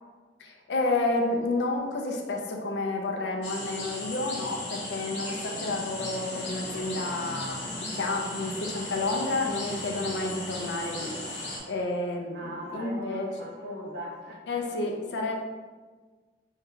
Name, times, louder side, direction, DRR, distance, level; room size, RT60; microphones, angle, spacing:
voice 1, 0.4-13.3 14.5-15.3, left 2 dB, 70° left, 1 dB, 0.4 m, -30 dB
sound 1, 3.4-11.6, left 1 dB, 90° left, 0.8 m, -36 dB
voice 2, 12.3-14.3, equal, 60° right, -5 dB, 0.8 m, -39 dB
2.6 x 2.2 x 3.5 m, 1.4 s
head